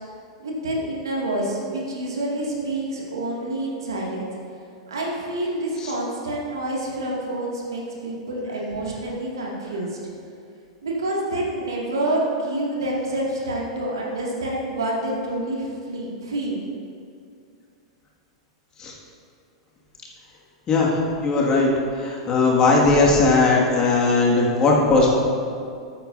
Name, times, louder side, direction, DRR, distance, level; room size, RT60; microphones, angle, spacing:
voice 1, 0.4-4.3 4.9-10.0 10.8-16.6, right 1 dB, 70° right, -3 dB, 2.1 m, -27 dB
voice 2, 20.7-25.2, left 3 dB, 25° left, -3 dB, 1.9 m, -19 dB
14.5 x 8.8 x 2.7 m, 2.4 s
figure-of-eight pair, 95°, 3 cm